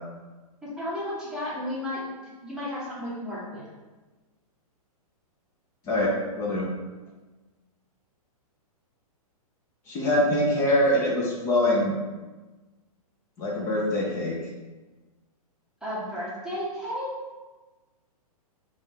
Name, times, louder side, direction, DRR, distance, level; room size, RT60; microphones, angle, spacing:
voice 1, 0.6-2.0 2.4-3.7 15.8-17.1, left 1 dB, 5° right, -9 dB, 0.8 m, -33 dB
voice 2, 5.9-6.7 9.9-11.9 13.4-14.4, left 1 dB, 15° left, -3 dB, 0.4 m, -24 dB
4.9 x 2.3 x 2.7 m, 1.2 s
hypercardioid pair, 155°, 19 cm